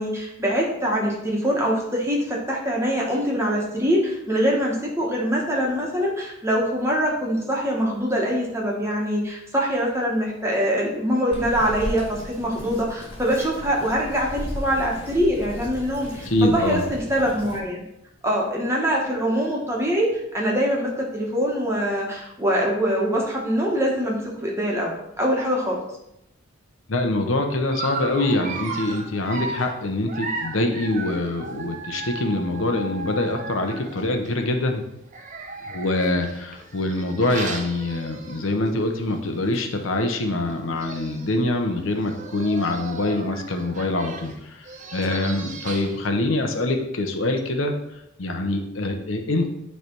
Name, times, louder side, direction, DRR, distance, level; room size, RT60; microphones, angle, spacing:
voice 1, 0.0-17.8 18.2-25.8, equal, 15° right, -3 dB, 1.4 m, -24 dB
Bird vocalization bird call bird song, 11.3-17.6, equal, 30° left, 2.9 m, -36 dB
voice 2, 16.3-16.8 26.9-34.8 35.7-47.7 48.2-49.5, left 2 dB, 75° left, 4 dB, 0.9 m, -24 dB
Dog, 27.7-34.3 35.1-38.7 39.1-39.3 39.5-39.6 40.5-40.6 40.8-41.3 42.0-46.1, right 3 dB, 40° right, 0.7 m, -36 dB
9.3 x 3.4 x 4.6 m, 0.83 s
head